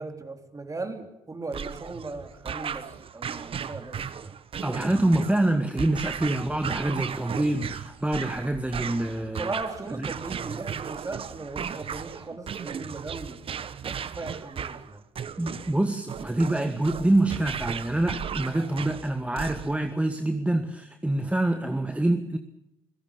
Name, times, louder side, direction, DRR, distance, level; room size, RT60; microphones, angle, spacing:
voice 1, 0.0-4.3 9.3-13.4 13.8-15.0, right 3 dB, 25° right, 6 dB, 3.8 m, -38 dB
sound 1, 1.5-19.9, right 7 dB, 45° right, 1.2 m, -36 dB
voice 2, 4.6-9.5 10.0-10.1 15.4-22.4, right 1 dB, 10° right, 7 dB, 1.6 m, -26 dB
28.0 x 16.5 x 7.1 m, 0.90 s
hypercardioid pair, 55°, 13 cm